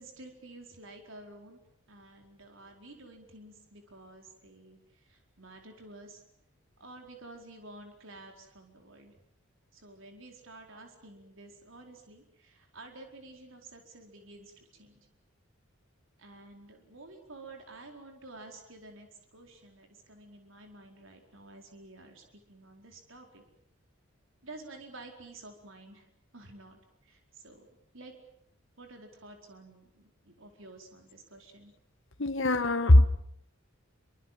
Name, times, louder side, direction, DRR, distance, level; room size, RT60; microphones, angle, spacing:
voice 1, 0.0-1.6 1.9-6.2 6.8-9.2 9.7-15.1 16.2-23.4 24.4-26.1 26.3-27.7 27.9-28.2 28.8-31.7, right 2 dB, 65° right, 4.7 m, -51 dB
voice 2, 32.2-33.1, left 1 dB, 60° left, 1.6 m, -20 dB
28.0 x 25.0 x 7.6 m
head